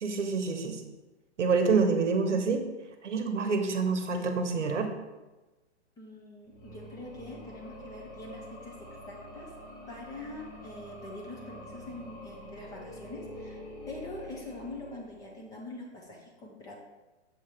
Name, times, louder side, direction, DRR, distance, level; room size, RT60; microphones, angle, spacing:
voice 1, 0.0-0.8 1.4-2.6 3.0-4.9, right 4 dB, 90° right, 6 dB, 0.9 m, -27 dB
voice 2, 6.0-9.5 9.9-16.7, left 2 dB, 10° left, -2 dB, 0.5 m, -44 dB
sound 1, 6.4-15.5, equal, 25° left, 1.1 m, -46 dB
6.8 x 2.9 x 4.9 m, 1.1 s
hypercardioid pair, 140°, 35 cm